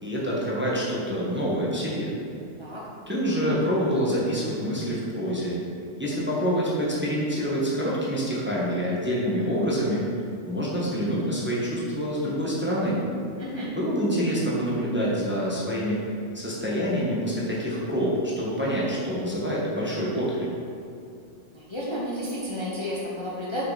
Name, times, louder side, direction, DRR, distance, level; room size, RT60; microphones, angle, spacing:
voice 1, 0.0-2.1 3.1-5.6 6.0-10.0 10.4-13.0 13.7-16.0 16.3-20.5, equal, 10° right, -6 dB, 1.2 m, -26 dB
voice 2, 13.4-13.7 21.5-23.6, equal, 25° left, -7 dB, 1.0 m, -32 dB
6.6 x 5.9 x 4.1 m, 2.5 s
omnidirectional pair, 1.4 m